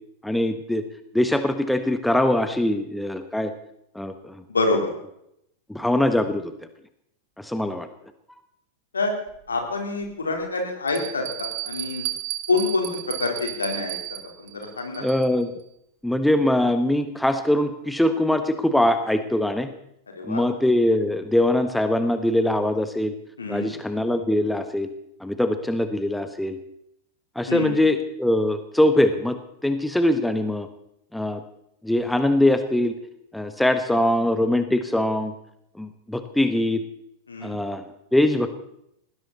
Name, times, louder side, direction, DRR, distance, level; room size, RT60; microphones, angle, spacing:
voice 1, 0.2-0.8 1.1-3.5 3.9-4.4 5.7-6.5 7.4-7.9 15.0-15.5 16.0-19.7 20.3-23.1 23.5-24.9 25.2-26.6 27.3-30.7 31.1-31.4 31.8-32.9 33.3-35.3 35.8-36.8 37.4-37.8 38.1-38.5, left 1 dB, 5° left, 9 dB, 1.3 m, -22 dB
voice 2, 4.5-4.9 8.9-9.1 9.5-12.0 12.5-15.1 20.1-20.5 23.4-23.7 27.5-27.7 33.9-34.1 37.3-37.6, left 3 dB, 75° left, 2 dB, 4.0 m, -27 dB
Bell, 9.3-9.4 10.0-10.1 10.9-15.4, right 15 dB, 45° right, 1.8 m, -34 dB
19.5 x 17.0 x 4.2 m, 0.76 s
figure-of-eight pair, 90°, 0 cm